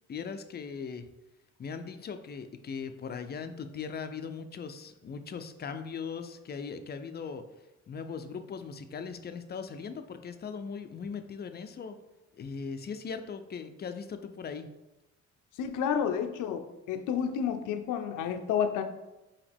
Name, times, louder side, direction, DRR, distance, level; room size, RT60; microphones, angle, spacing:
voice 1, 0.1-1.1 1.6-7.4 7.9-12.0 12.4-14.7, left 6 dB, 35° left, 9 dB, 0.4 m, -39 dB
voice 2, 15.6-18.8, left 8 dB, 85° left, 7 dB, 0.5 m, -30 dB
4.9 x 2.9 x 3.4 m, 1.0 s
cardioid pair, 90°, 30 cm